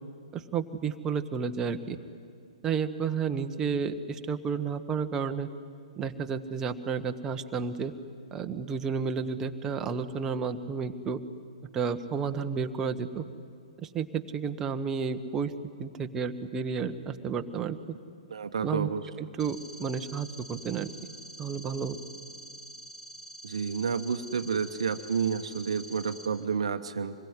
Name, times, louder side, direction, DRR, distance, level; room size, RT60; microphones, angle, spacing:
voice 1, 0.3-2.0 2.6-5.5 6.0-7.9 8.3-11.2 11.7-13.2 13.8-15.5 15.8-17.8 18.6-18.9 19.2-20.9 21.4-22.0, right 6 dB, 15° right, 7 dB, 1.2 m, -31 dB
voice 2, 18.3-19.0 23.4-27.1, right 6 dB, 60° right, 8 dB, 1.1 m, -30 dB
sound 1, 19.4-26.3, right 1 dB, 5° left, 3.9 m, -46 dB
25.5 x 21.5 x 9.9 m, 2.4 s
figure-of-eight pair, 120°, 4 cm